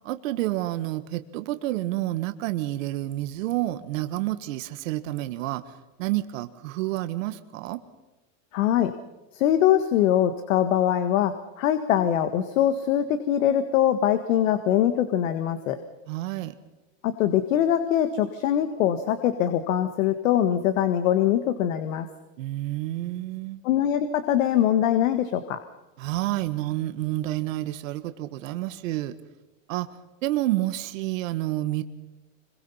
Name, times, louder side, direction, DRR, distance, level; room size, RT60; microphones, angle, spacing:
voice 1, 0.0-5.6 6.0-7.8 16.1-16.5 22.4-23.6 26.0-29.1 29.7-29.9 30.2-31.8, right 16 dB, 75° right, 10 dB, 1.6 m, -29 dB
voice 2, 8.5-8.9 9.3-15.8 17.0-22.1 23.6-25.6, left 10 dB, 75° left, 9 dB, 1.7 m, -23 dB
26.5 x 22.5 x 5.7 m, 1.1 s
supercardioid pair, 125°, 39 cm